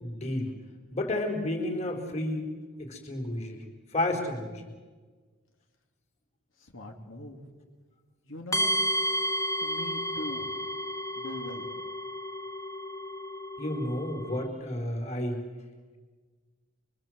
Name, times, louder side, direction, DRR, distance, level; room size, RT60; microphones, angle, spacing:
voice 1, 0.0-0.5 0.9-2.5 2.8-3.6 3.9-4.7 13.6-15.4, left 1 dB, 30° left, 2 dB, 4.0 m, -31 dB
voice 2, 6.6-7.5 8.3-8.7 9.6-10.5 11.2-11.7, left 1 dB, 75° left, 2 dB, 2.8 m, -41 dB
sound 1, 8.5-14.5, equal, 15° left, 1.4 m, -32 dB
28.0 x 23.0 x 7.8 m, 1.4 s
head